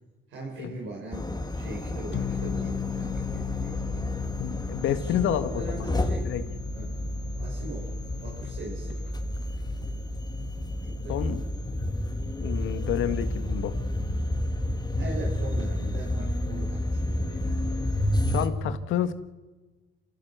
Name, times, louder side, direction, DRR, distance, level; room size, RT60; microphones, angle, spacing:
voice 1, 0.3-4.1 4.9-6.2 6.7-6.9 7.4-7.9 8.2-9.0 10.8-11.1 15.0-17.6, right 2 dB, 90° right, -2 dB, 7.6 m, -40 dB
sound 1, 1.1-18.5, left 1 dB, 20° left, 2.7 m, -30 dB
sound 2, 2.1-9.0, left 10 dB, 65° left, 1.5 m, -37 dB
voice 2, 4.4-5.9 6.2-6.4 11.1-11.4 12.4-13.8 18.3-19.1, left 10 dB, 85° left, 10 dB, 1.7 m, -29 dB
27.0 x 16.0 x 8.1 m, 1.2 s
cardioid pair, 90°, 20 cm